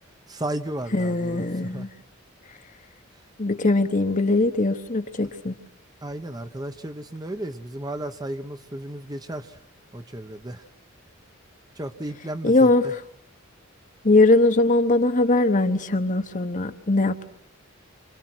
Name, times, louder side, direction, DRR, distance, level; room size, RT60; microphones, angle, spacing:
voice 1, 0.3-1.9 6.0-9.6 9.9-10.6 11.8-12.9, right 1 dB, 20° right, 8 dB, 1.0 m, -34 dB
voice 2, 0.9-1.9 3.4-5.5 12.4-13.0 14.0-17.3, left 2 dB, 35° left, 8 dB, 1.2 m, -21 dB
30.0 x 26.0 x 6.2 m, 0.63 s
head